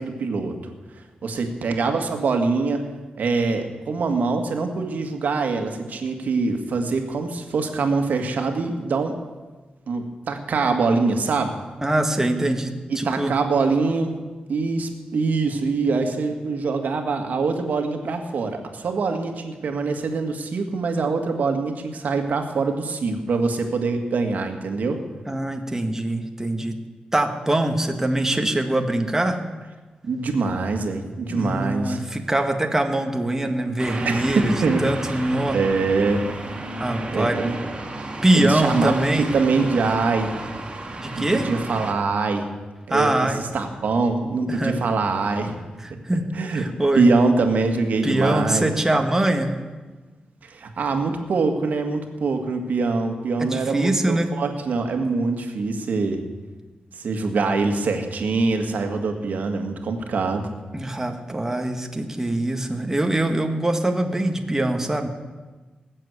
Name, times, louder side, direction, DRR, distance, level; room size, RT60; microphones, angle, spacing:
voice 1, 0.0-2.8 3.2-9.2 9.9-11.6 12.9-14.2 14.5-25.0 30.0-32.0 34.1-34.9 35.5-36.2 37.1-37.6 38.3-40.4 41.2-42.5 42.9-45.6 45.9-46.0 46.3-46.7 46.9-48.7 50.4-56.2 56.9-60.5, right 4 dB, 70° right, 5 dB, 2.0 m, -24 dB
voice 2, 11.8-13.4 25.3-26.8 27.1-29.4 31.3-35.6 36.8-37.4 38.2-39.3 41.0-41.5 42.9-43.4 44.5-44.8 45.8-47.1 48.0-49.6 53.4-54.3 60.7-65.1, right 1 dB, 15° right, 4 dB, 1.6 m, -23 dB
sound 1, 33.8-41.9, right 2 dB, 35° right, 2.5 m, -33 dB
19.5 x 7.7 x 8.2 m, 1.3 s
cardioid pair, 75°, 3 cm